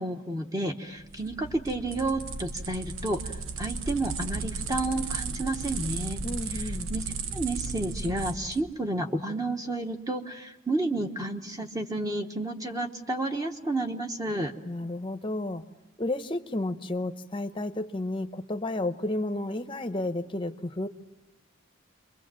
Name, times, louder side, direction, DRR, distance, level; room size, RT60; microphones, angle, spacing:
voice 1, 0.0-3.3 3.6-6.2 6.9-7.0 7.3-14.5, right 2 dB, 15° right, 4 dB, 1.1 m, -31 dB
sound 1, 1.0-8.6, right 4 dB, 85° right, 1.1 m, -35 dB
voice 2, 6.2-6.9 14.6-15.6 16.0-20.9, left 2 dB, 25° left, 8 dB, 0.8 m, -32 dB
28.0 x 23.5 x 7.6 m, 1.1 s
head